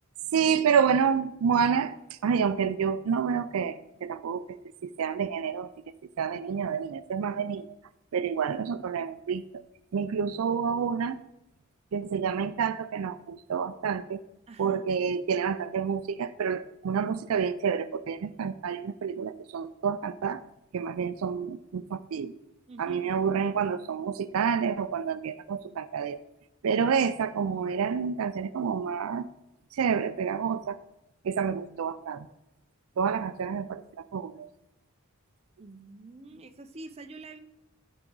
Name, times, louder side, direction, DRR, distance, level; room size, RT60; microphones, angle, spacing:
voice 1, 0.3-4.6 4.8-5.7 6.2-7.7 8.1-9.4 9.9-11.2 11.9-14.2 14.6-20.4 20.7-22.3 22.8-26.2 26.6-29.3 29.7-30.8 31.2-32.3 33.0-33.8 34.1-34.5, right 6 dB, 85° right, 13 dB, 0.4 m, -28 dB
voice 2, 14.5-14.8 22.7-23.3 35.6-37.4, right 2 dB, 30° right, 7 dB, 0.6 m, -46 dB
12.5 x 4.8 x 3.9 m, 0.92 s
head